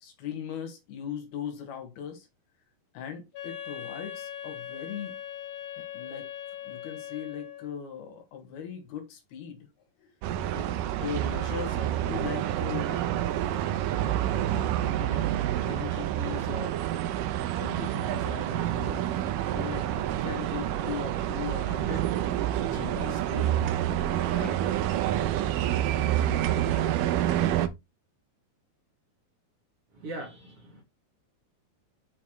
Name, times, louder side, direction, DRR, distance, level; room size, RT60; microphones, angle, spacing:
voice 1, 0.0-2.3 2.9-5.2 5.8-6.3 6.6-9.7 10.0-10.1 10.5-10.7 11.0-13.7 14.0-15.3 15.7-16.8 17.5-19.1 19.4-22.1 22.6-23.7 24.3-24.6, left 8 dB, 80° left, 3.7 m, -39 dB
Wind instrument woodwind instrument, 3.3-7.8, left 10 dB, 60° left, 2.8 m, -40 dB
sound 1, 10.2-27.7, right 12 dB, 75° right, 2.1 m, -28 dB
voice 2, 29.9-30.8, right 2 dB, 45° right, 2.6 m, -40 dB
7.2 x 5.7 x 3.2 m
omnidirectional pair, 4.4 m